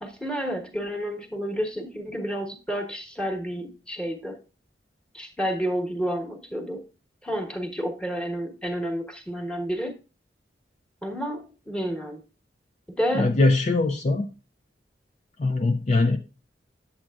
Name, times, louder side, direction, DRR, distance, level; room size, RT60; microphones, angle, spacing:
voice 1, 0.0-4.4 5.1-6.9 7.2-10.0 11.0-12.2 12.9-13.3, equal, 5° left, 2 dB, 1.2 m, -30 dB
voice 2, 13.1-14.3 15.4-16.2, left 2 dB, 40° left, 6 dB, 0.4 m, -21 dB
8.6 x 7.6 x 2.4 m, 0.32 s
head